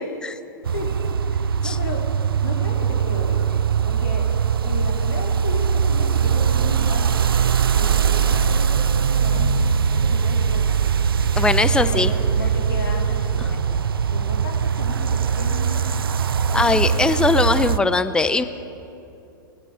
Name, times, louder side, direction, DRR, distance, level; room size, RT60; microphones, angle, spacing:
sound 1, 0.6-17.8, right 7 dB, 85° right, 0.5 m, -21 dB
voice 1, 0.7-2.0 2.4-4.3 4.6-7.3 7.7-10.8 11.8-13.8 14.1-16.0 16.5-17.1, left 3 dB, 75° left, 0 dB, 3.6 m, -34 dB
voice 2, 11.4-12.1 13.4-13.5 16.5-18.4, left 3 dB, 5° left, 12 dB, 0.6 m, -20 dB
19.5 x 14.5 x 5.0 m, 2.8 s
hypercardioid pair, 110°, 12 cm